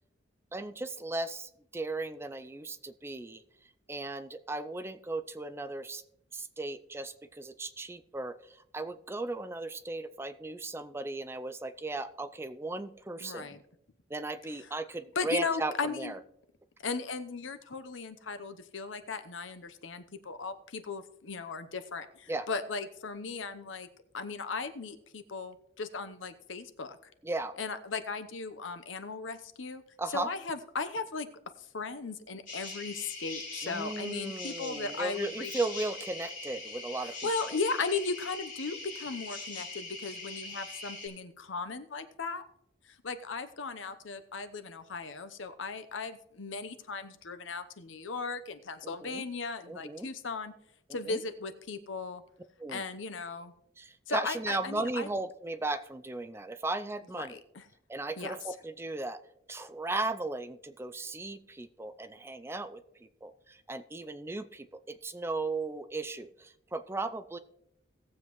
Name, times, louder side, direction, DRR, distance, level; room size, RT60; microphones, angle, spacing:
voice 1, 0.5-3.4 3.9-6.0 6.3-13.5 14.1-16.2 22.3-22.5 27.2-27.5 30.0-30.3 33.6-37.6 48.8-49.2 49.7-50.1 50.9-51.2 52.6-52.8 53.8-57.4 57.9-59.2 59.5-62.8 63.2-67.4, right 2 dB, 15° right, 11 dB, 0.4 m, -36 dB
voice 2, 13.2-13.6 15.2-16.1 16.8-23.9 24.1-27.0 27.6-29.8 30.1-31.3 31.6-35.5 37.2-42.4 43.0-50.5 50.9-52.2 52.7-53.5 54.1-55.1 57.2-57.6 58.2-58.3, left 4 dB, 80° left, 10 dB, 0.8 m, -37 dB
sound 1, 32.5-41.1, left 3 dB, 45° left, 4.2 m, -42 dB
18.0 x 7.5 x 3.1 m, 0.76 s
head